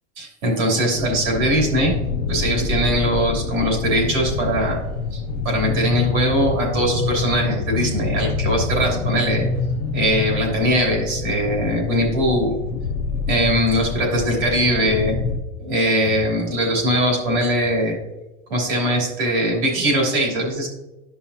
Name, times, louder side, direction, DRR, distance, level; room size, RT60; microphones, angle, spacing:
voice 1, 0.2-1.9 2.3-4.8 5.1-9.5 9.9-12.6 13.3-15.2 15.6-18.0 18.5-20.7, equal, 40° right, -2 dB, 3.1 m, -21 dB
sound 1, 0.9-15.4, left 4 dB, 20° left, 0.3 m, -26 dB
12.5 x 5.6 x 2.8 m, 1.0 s
supercardioid pair, 180°, 36 cm